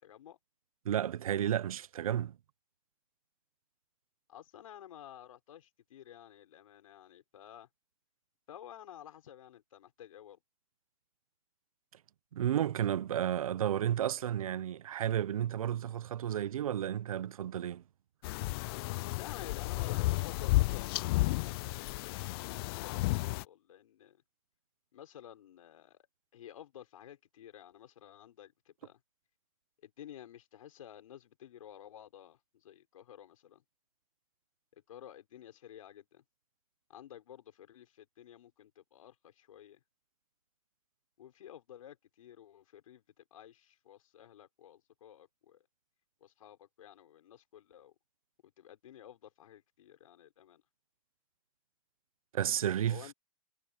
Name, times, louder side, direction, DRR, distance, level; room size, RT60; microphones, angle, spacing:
voice 1, 0.0-0.4 4.3-7.7 8.5-10.4 19.1-24.2 24.9-26.1 26.3-29.0 29.8-33.6 34.7-36.2 36.9-39.8 41.2-45.6 46.2-47.9 48.4-50.6 52.9-53.1, left 11 dB, 80° left, 6.1 m, -52 dB
voice 2, 0.8-2.4 12.3-17.8 52.3-53.1, right 10 dB, 90° right, 0.7 m, -32 dB
Top of Hangman's Hill in Malvern HIlls summer, 18.2-23.4, left 21 dB, 45° left, 0.4 m, -32 dB
hypercardioid pair, 135°, 17 cm